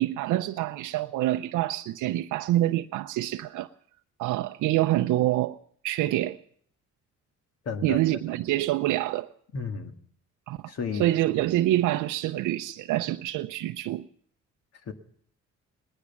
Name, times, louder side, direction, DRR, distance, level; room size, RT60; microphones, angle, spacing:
voice 1, 0.0-3.7 4.2-5.6 5.8-6.4 7.8-9.3 10.5-10.7 11.0-14.1, right 15 dB, 85° right, 0.6 m, -26 dB
voice 2, 7.7-8.3 9.5-9.9 10.7-11.1 14.9-15.0, left 5 dB, 55° left, 2.0 m, -33 dB
19.5 x 9.9 x 7.1 m
cardioid pair, 90°, 30 cm